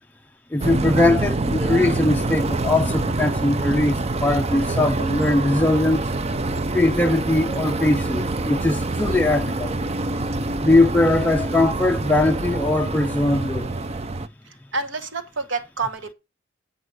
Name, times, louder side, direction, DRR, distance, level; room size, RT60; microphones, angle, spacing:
voice 1, 0.5-6.0 6.7-9.8 10.6-13.7, left 2 dB, 10° left, 0.5 m, -20 dB
sound 1, 0.6-14.3, right 2 dB, 30° right, 0.6 m, -25 dB
voice 2, 14.7-16.1, right 4 dB, 65° right, 1.6 m, -28 dB
9.7 x 5.4 x 6.4 m
head